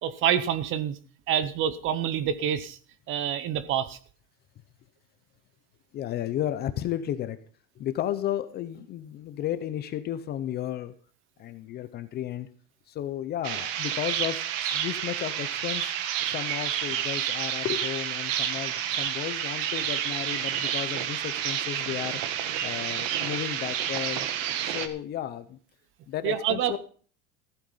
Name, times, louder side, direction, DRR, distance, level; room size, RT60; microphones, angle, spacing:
voice 1, 0.0-1.0 1.3-2.8 3.1-4.0 26.2-26.8, right 9 dB, 30° right, 0.8 m, -27 dB
voice 2, 5.9-7.4 7.8-10.9 11.4-12.5 12.9-15.9 16.2-22.2 22.6-24.3 24.6-25.6 26.1-26.8, left 11 dB, 25° left, 0.6 m, -33 dB
sound 1, 13.4-24.9, right 10 dB, 65° right, 1.8 m, -30 dB
15.0 x 9.0 x 5.6 m
cardioid pair, 180°, 41 cm